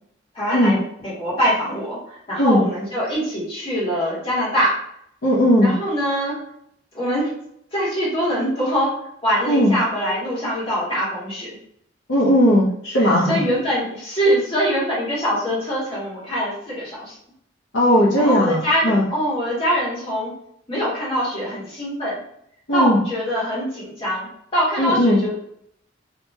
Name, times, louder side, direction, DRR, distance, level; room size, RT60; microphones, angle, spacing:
voice 1, 0.3-0.8 1.0-4.7 5.6-6.3 6.9-7.3 7.7-8.9 9.2-11.6 13.0-17.2 18.1-20.3 20.7-22.2 22.7-24.3 24.5-25.3, equal, 30° left, -9 dB, 1.5 m, -23 dB
voice 2, 5.2-5.7 9.5-9.7 12.1-13.4 17.7-19.0 22.7-23.0 24.8-25.2, equal, 90° left, -6 dB, 0.8 m, -17 dB
3.0 x 2.8 x 2.2 m, 0.71 s
head